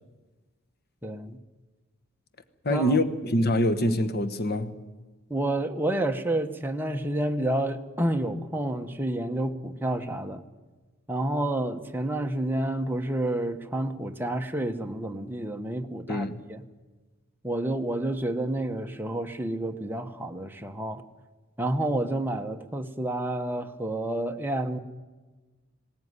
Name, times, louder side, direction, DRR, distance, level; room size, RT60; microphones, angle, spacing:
voice 1, 1.0-1.4 2.7-3.0 5.3-10.4 11.1-16.6 17.4-21.0 21.6-24.8, right 1 dB, 10° right, 1.1 m, -29 dB
voice 2, 2.6-4.8 16.1-16.4, left 1 dB, 50° left, 1.3 m, -25 dB
19.5 x 17.5 x 9.6 m
head